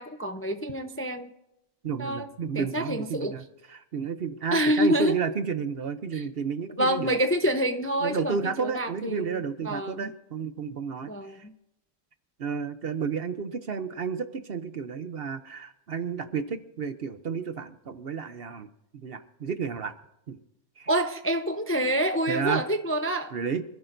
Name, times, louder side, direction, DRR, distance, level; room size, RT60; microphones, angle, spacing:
voice 1, 0.0-1.3 2.0-2.2 2.5-3.3 4.5-5.1 6.1-6.2 6.8-10.1 11.1-11.5 20.9-23.3, equal, 15° left, 6 dB, 0.5 m, -27 dB
voice 2, 1.8-7.2 8.0-11.4 12.4-18.7 19.0-20.0 20.3-20.4 20.8-20.9 22.3-22.6 23.3-23.6, right 6 dB, 55° right, 10 dB, 0.9 m, -32 dB
26.0 x 15.5 x 2.6 m, 0.85 s
omnidirectional pair, 1.4 m